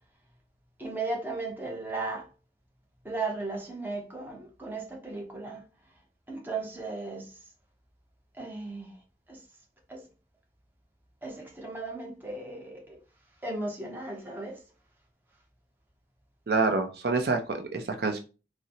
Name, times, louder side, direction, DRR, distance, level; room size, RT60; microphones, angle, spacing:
voice 1, 0.8-2.3 3.0-5.6 6.3-7.3 8.4-8.9 9.3-9.4 9.9-10.0 11.2-13.0 13.4-14.6, right 3 dB, 10° right, 0.7 m, -36 dB
voice 2, 16.5-18.2, right 3 dB, 60° right, 0.5 m, -27 dB
3.9 x 2.0 x 2.8 m
head